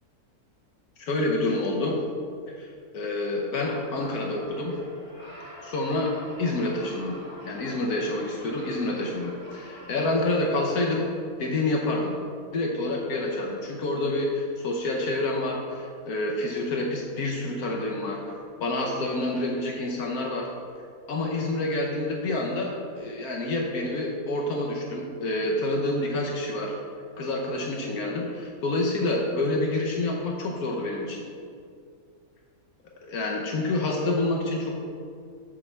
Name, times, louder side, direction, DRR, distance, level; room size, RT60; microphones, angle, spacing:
voice 1, 1.0-2.0 2.5-4.8 5.6-6.1 6.4-7.2 7.4-11.1 11.4-12.2 12.5-20.5 21.1-26.8 27.2-31.2 33.0-34.8, left 2 dB, 70° left, -1 dB, 1.3 m, -28 dB
sound 1, 3.6-10.2, equal, 15° left, 2.0 m, -46 dB
7.3 x 7.1 x 3.3 m, 2.3 s
omnidirectional pair, 1.7 m